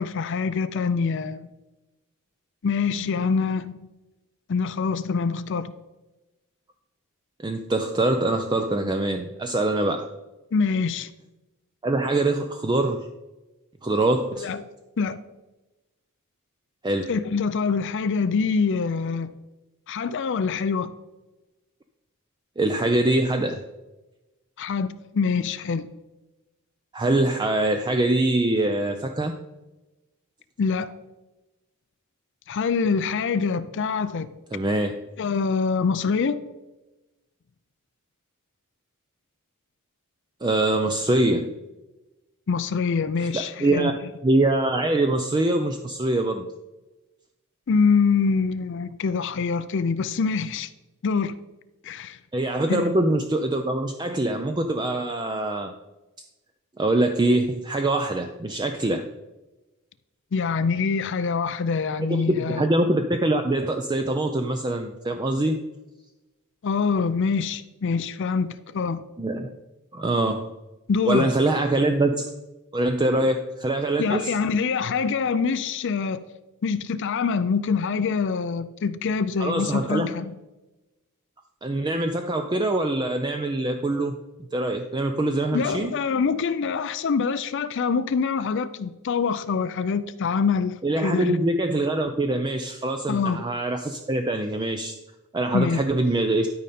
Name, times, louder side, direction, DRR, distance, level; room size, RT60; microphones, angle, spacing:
voice 1, 0.0-1.5 2.6-3.8 4.5-5.7 10.5-11.1 14.4-14.6 15.0-15.2 17.1-19.3 19.9-20.9 24.6-25.9 30.6-30.9 32.5-34.3 35.2-36.4 42.5-44.1 47.7-50.7 51.0-51.3 51.8-52.2 52.7-52.9 60.3-62.6 66.6-69.0 70.9-71.3 74.0-76.2 76.6-80.3 85.5-91.4 93.1-93.4 95.5-95.8, left 5 dB, 55° left, 0.4 m, -25 dB
voice 2, 7.4-10.1 11.8-13.1 13.8-14.5 16.8-17.1 22.6-23.6 26.9-29.4 34.5-35.0 40.4-41.6 43.2-43.9 44.2-46.5 52.3-55.7 56.8-59.1 62.1-65.6 69.2-69.5 69.9-70.5 71.0-72.2 72.7-74.3 79.4-80.1 81.6-84.2 84.5-85.9 90.8-94.9 95.3-96.5, right 2 dB, 20° right, 0.4 m, -24 dB
12.5 x 5.2 x 4.2 m
head